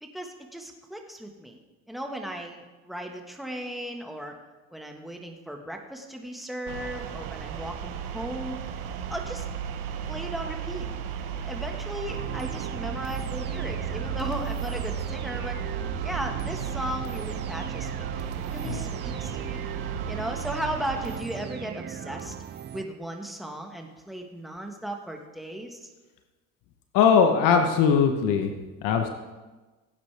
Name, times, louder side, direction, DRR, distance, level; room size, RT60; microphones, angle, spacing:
voice 1, 0.0-1.6 1.9-4.4 4.7-9.4 10.1-10.9 11.3-15.6 16.0-19.6 20.1-22.3 22.7-25.9, right 1 dB, ahead, 2 dB, 1.5 m, -36 dB
sound 1, 6.7-21.2, right 7 dB, 80° right, 1.2 m, -34 dB
sound 2, 12.1-22.8, right 9 dB, 30° right, 0.5 m, -38 dB
voice 2, 26.9-28.5 28.8-29.1, left 6 dB, 75° left, 5 dB, 1.1 m, -20 dB
17.0 x 9.4 x 3.4 m, 1.2 s
cardioid pair, 105°, 34 cm